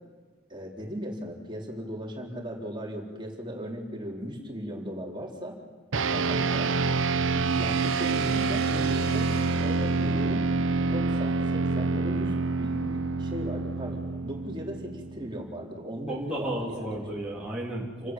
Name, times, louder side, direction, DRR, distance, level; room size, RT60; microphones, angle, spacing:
voice 1, 0.5-5.5 6.1-6.7 7.5-9.3 9.6-10.5 10.9-17.0, equal, 25° right, -1 dB, 4.1 m, -37 dB
sound 1, 5.9-15.6, right 3 dB, 80° right, 0.9 m, -27 dB
sound 2, 7.4-12.2, right 4 dB, 50° right, 3.4 m, -37 dB
voice 2, 16.1-18.1, right 1 dB, 5° right, -5 dB, 3.5 m, -33 dB
29.0 x 19.0 x 9.1 m, 1.4 s
head